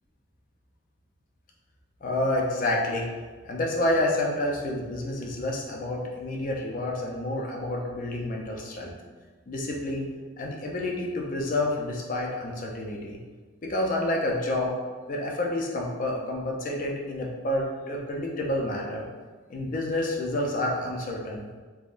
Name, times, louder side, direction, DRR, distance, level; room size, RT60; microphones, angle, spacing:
voice 1, 2.0-3.1 3.4-8.9 9.5-10.1 10.4-13.2 13.6-14.7 15.1-19.0 19.5-21.5, left 1 dB, 40° left, -1 dB, 0.4 m, -29 dB
3.4 x 2.1 x 2.5 m, 1.4 s
head